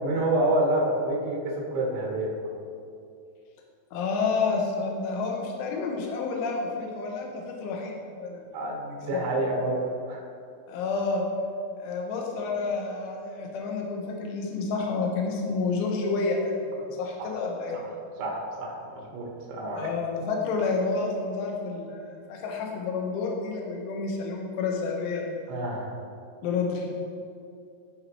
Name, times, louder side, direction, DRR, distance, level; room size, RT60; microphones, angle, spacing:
voice 1, 0.0-2.3 8.5-9.8 10.1-10.2 17.2-17.3 17.7-17.8 18.2-19.9 25.5-25.9, right 1 dB, 75° right, -2 dB, 3.5 m, -28 dB
voice 2, 3.9-8.5 9.1-9.3 10.7-11.3 11.8-17.8 19.7-25.4 26.4-26.9, left 4 dB, 75° left, 0 dB, 3.5 m, -29 dB
17.0 x 5.7 x 3.0 m, 2.4 s
omnidirectional pair, 5.7 m